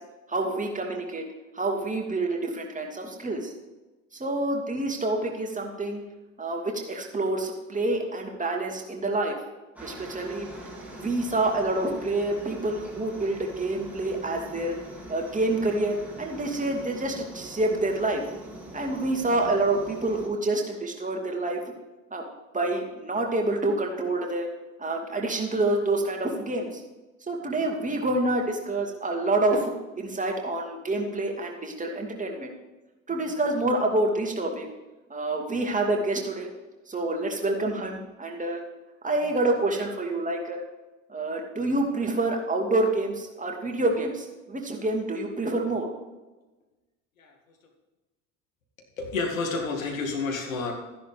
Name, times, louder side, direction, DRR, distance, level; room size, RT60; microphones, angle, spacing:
voice 1, 0.3-1.2 1.5-3.5 4.2-6.0 6.4-9.4 9.8-10.5 11.0-14.7 15.1-18.3 18.7-21.6 22.1-22.3 22.5-24.5 24.8-26.8 27.3-32.5 33.1-34.7 35.1-36.5 36.9-38.6 39.0-40.6 41.1-45.9, right 2 dB, 20° right, 1 dB, 2.5 m, -27 dB
Aircraft, 9.8-20.3, right 1 dB, 5° right, 4.0 m, -43 dB
voice 2, 49.0-50.7, left 3 dB, 80° left, 1 dB, 2.1 m, -29 dB
13.5 x 10.5 x 3.5 m, 1.1 s
figure-of-eight pair, 60°, 40 cm